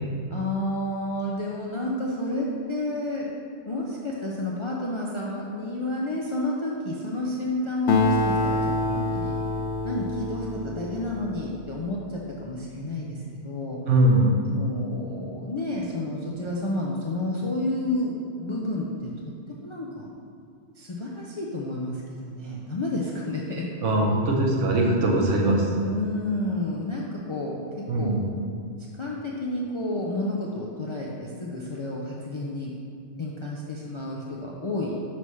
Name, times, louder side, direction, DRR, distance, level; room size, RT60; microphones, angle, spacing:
voice 1, 0.3-3.3 3.7-9.3 9.8-13.8 14.4-19.1 19.5-20.1 20.8-23.6 25.8-28.2 28.9-32.7 33.2-35.0, left 1 dB, 50° left, -4 dB, 0.3 m, -30 dB
Acoustic guitar, 7.9-11.7, left 2 dB, 85° left, 0.9 m, -26 dB
voice 2, 13.9-14.4 23.8-25.6 27.9-28.2, right 1 dB, 85° right, 0 dB, 1.2 m, -21 dB
5.8 x 3.1 x 5.5 m, 2.3 s
omnidirectional pair, 1.2 m